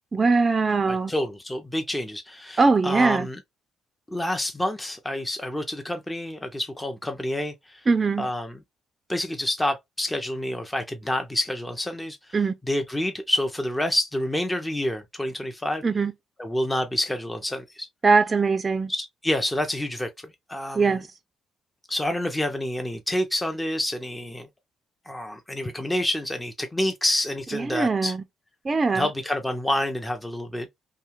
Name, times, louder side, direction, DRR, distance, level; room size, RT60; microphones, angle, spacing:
voice 1, 0.1-1.1 2.6-3.3 7.9-8.3 12.3-12.5 15.8-16.1 18.0-18.9 20.7-21.1 27.5-28.2 28.6-29.1, right 4 dB, 30° right, 0.4 m, -21 dB
voice 2, 0.8-3.4 4.1-7.9 8.2-8.6 9.1-12.2 12.7-15.8 16.4-17.9 18.9-20.1 20.5-21.0 21.9-24.5 25.1-28.1 28.9-30.7, left 1 dB, 10° left, 0.6 m, -28 dB
2.8 x 2.3 x 3.0 m
cardioid pair, 90°, 0 cm